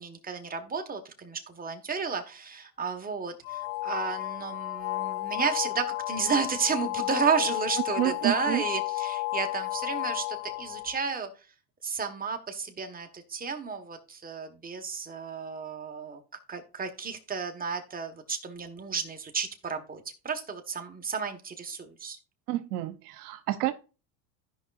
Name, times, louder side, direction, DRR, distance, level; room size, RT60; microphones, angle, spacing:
voice 1, 0.0-11.3 11.8-16.2 16.5-22.2, right 5 dB, 20° right, 1.6 m, -32 dB
sound 1, 3.4-11.0, left 19 dB, 70° left, 0.6 m, -33 dB
voice 2, 8.0-8.6 22.5-23.7, right 15 dB, 80° right, 0.9 m, -29 dB
15.0 x 5.4 x 2.6 m
supercardioid pair, 95°, 44 cm